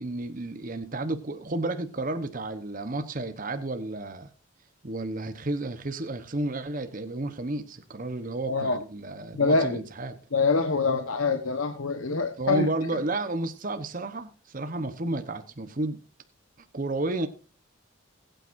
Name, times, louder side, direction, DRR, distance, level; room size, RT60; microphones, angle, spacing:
voice 1, 0.0-4.3 4.8-10.2 12.4-16.0 16.7-17.3, right 2 dB, 40° right, 1.0 m, -32 dB
voice 2, 8.5-8.8 9.3-9.8 10.3-12.7, left 3 dB, 85° left, 1.2 m, -25 dB
20.5 x 9.1 x 2.6 m
head